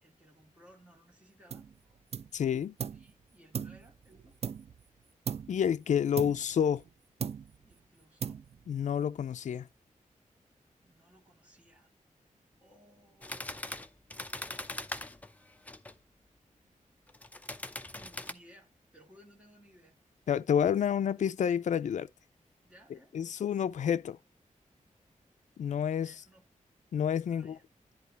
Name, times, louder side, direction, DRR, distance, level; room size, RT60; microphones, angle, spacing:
voice 1, 0.0-1.7 2.9-4.4 7.6-8.5 10.8-11.9 12.6-13.5 17.9-20.0 22.6-23.1 26.0-26.5 27.3-27.6, equal, 10° right, 2.9 m, -60 dB
sound 1, 1.5-1.8 2.1-3.1 3.5-4.9 5.3-5.7 6.2-6.9 7.2-7.7 8.2-8.8, right 7 dB, 50° right, 0.4 m, -38 dB
voice 2, 2.3-2.7 5.5-6.8 8.7-9.7 20.3-22.1 23.1-24.2 25.6-26.1 26.9-27.6, left 8 dB, 65° left, 0.4 m, -29 dB
sound 2, 13.2-16.0 17.1-18.3, left 1 dB, 10° left, 0.6 m, -41 dB
10.5 x 3.9 x 4.1 m
wide cardioid pair, 155°, 14 cm